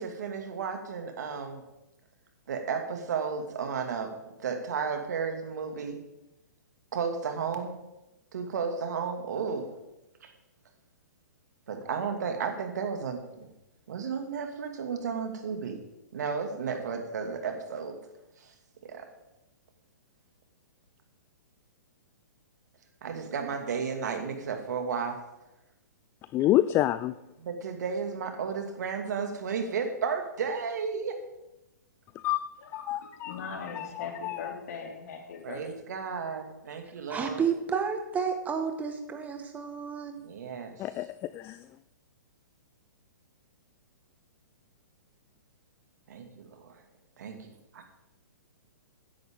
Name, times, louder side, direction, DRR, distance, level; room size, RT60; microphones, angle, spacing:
voice 1, 0.0-1.6 2.5-4.1 4.4-6.0 6.9-7.8 8.3-9.7 10.2-10.3 11.7-13.5 13.9-15.8 16.1-17.9 18.4-18.5 18.8-19.1 23.0-25.2 27.4-31.2 35.4-37.4 40.2-40.7 46.1-46.8 47.2-47.8, right 6 dB, 65° right, 5 dB, 2.5 m, -33 dB
voice 2, 26.3-27.2 32.2-32.4 32.7-33.3 33.7-34.4 40.8-41.7, left 14 dB, 25° left, 15 dB, 0.4 m, -28 dB
voice 3, 32.6-35.6, left 5 dB, 60° left, 2 dB, 3.2 m, -40 dB
voice 4, 37.1-40.2, right 6 dB, 15° right, 5 dB, 1.7 m, -31 dB
16.5 x 10.5 x 3.8 m, 0.94 s
hypercardioid pair, 125°, 10 cm